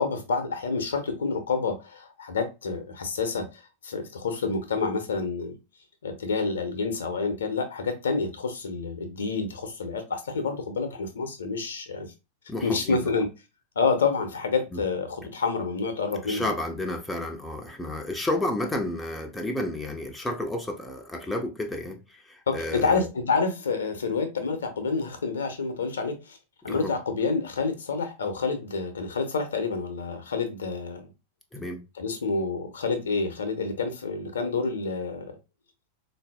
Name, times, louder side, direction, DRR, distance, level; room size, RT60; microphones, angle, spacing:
voice 1, 0.0-5.6 6.0-12.1 12.6-13.3 13.8-16.5 22.5-26.4 26.6-31.1 32.0-35.4, left 4 dB, 65° left, 0.7 m, -28 dB
voice 2, 12.5-13.0 14.7-14.8 16.2-23.1 26.7-26.9 31.5-31.8, left 1 dB, 5° left, 0.5 m, -31 dB
3.8 x 2.6 x 2.2 m
figure-of-eight pair, 90°, 0 cm